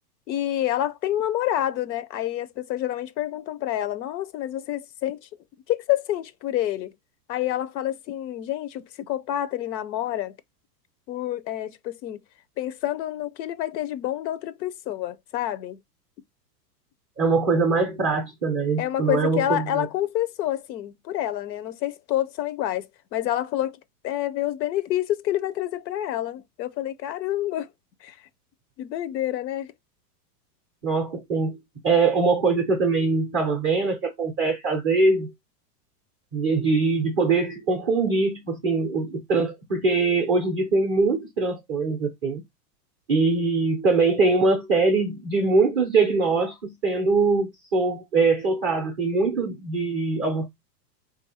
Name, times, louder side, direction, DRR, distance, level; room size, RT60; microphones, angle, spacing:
voice 1, 0.3-5.2 5.7-6.9 7.3-10.3 11.1-12.2 12.6-15.8 18.8-23.8 24.0-27.7 28.0-28.2 28.8-29.7, left 13 dB, 80° left, 0.7 m, -28 dB
voice 2, 17.2-19.9 30.8-31.6 31.8-35.3 36.3-42.4 43.1-50.5, right 3 dB, 20° right, 0.3 m, -22 dB
3.2 x 2.6 x 4.1 m
supercardioid pair, 140°, 50 cm